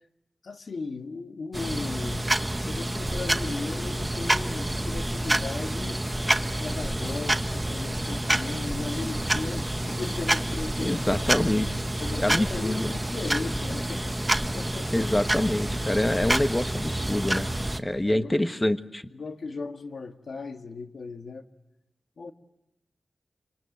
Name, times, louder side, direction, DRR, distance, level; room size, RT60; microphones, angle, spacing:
voice 1, 0.4-2.3 2.6-6.1 6.6-11.2 12.0-14.1 14.5-15.1 17.9-18.4 19.1-21.5 22.2-22.3, left 4 dB, 70° left, 7 dB, 1.8 m, -37 dB
sound 1, 1.5-17.8, right 1 dB, 15° right, 1.1 m, -28 dB
voice 2, 10.8-11.7 12.2-12.9 14.9-17.5 17.8-19.0, left 1 dB, 15° left, 10 dB, 1.3 m, -26 dB
27.5 x 25.5 x 8.0 m, 0.88 s
wide cardioid pair, 80°, 0 cm